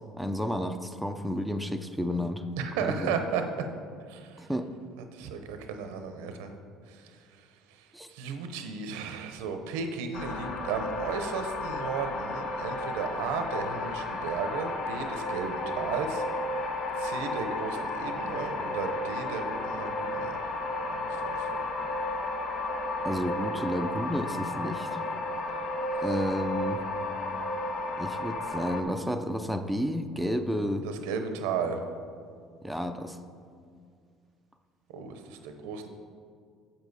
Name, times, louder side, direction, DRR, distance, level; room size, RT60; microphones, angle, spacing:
voice 1, 0.2-2.4 2.8-3.1 4.4-4.7 7.9-8.1 23.0-25.0 26.0-26.8 28.0-30.9 32.6-33.2, equal, ahead, 6 dB, 0.5 m, -31 dB
voice 2, 2.6-3.4 4.1-4.5 5.0-6.5 6.9-16.2 17.0-20.4 20.9-21.6 30.8-31.8 34.9-35.9, right 6 dB, 90° right, 7 dB, 0.7 m, -35 dB
sound 1, 10.1-28.8, left 2 dB, 55° left, 0.8 m, -33 dB
7.4 x 7.1 x 4.0 m, 2.2 s
supercardioid pair, 90°, 0 cm